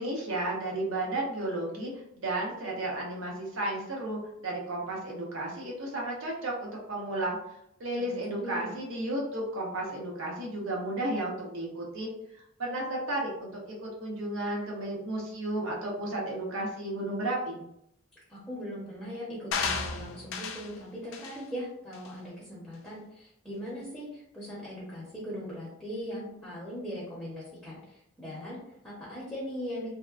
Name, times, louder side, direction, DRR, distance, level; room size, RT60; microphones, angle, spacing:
voice 1, 0.0-1.9 2.2-7.4 7.8-12.1 12.6-17.6, right 1 dB, 80° right, -2 dB, 0.8 m, -33 dB
voice 2, 8.0-8.7 18.3-29.9, equal, 5° left, -8 dB, 0.7 m, -40 dB
sound 1, 19.5-20.7 21.1-21.4 21.9-22.1, left 5 dB, 65° left, 0.3 m, -33 dB
2.8 x 2.1 x 2.4 m, 0.76 s
head